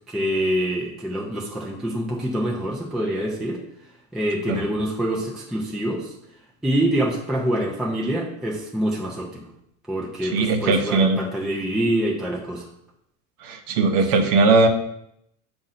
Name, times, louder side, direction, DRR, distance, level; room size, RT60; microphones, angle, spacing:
voice 1, 0.1-3.6 4.1-6.1 6.6-9.4 9.9-12.6, right 1 dB, ahead, -3 dB, 0.4 m, -25 dB
voice 2, 10.2-11.2 13.4-14.7, right 3 dB, 50° right, 5 dB, 0.8 m, -19 dB
7.3 x 2.6 x 5.6 m, 0.76 s
supercardioid pair, 160°, 39 cm